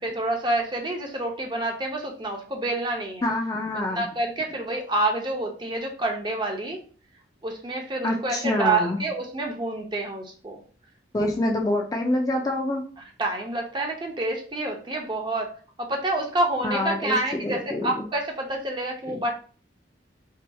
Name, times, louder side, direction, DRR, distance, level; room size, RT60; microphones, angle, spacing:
voice 1, 0.0-3.2 3.9-6.8 7.4-10.6 13.0-15.5 15.8-19.4, right 2 dB, 25° right, 2 dB, 0.6 m, -28 dB
voice 2, 3.2-4.0 8.0-9.0 11.1-12.8 16.6-18.0 19.1-19.2, left 1 dB, 20° left, 1 dB, 0.3 m, -26 dB
4.4 x 2.8 x 2.2 m, 0.41 s
head